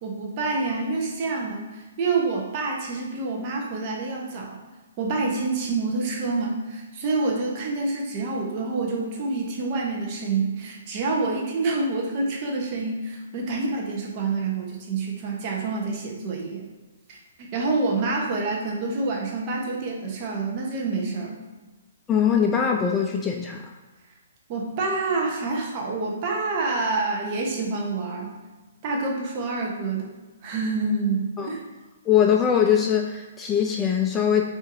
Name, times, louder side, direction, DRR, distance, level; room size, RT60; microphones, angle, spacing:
voice 1, 0.0-4.6 5.0-16.7 17.1-21.4 24.5-28.4 28.8-30.1 30.4-31.6, right 3 dB, 35° right, -1 dB, 1.0 m, -27 dB
voice 2, 22.1-23.6 31.4-31.5 32.1-34.4, left 8 dB, 15° left, 1 dB, 0.3 m, -21 dB
5.2 x 2.8 x 2.6 m, 1.2 s
figure-of-eight pair, 125°, 0 cm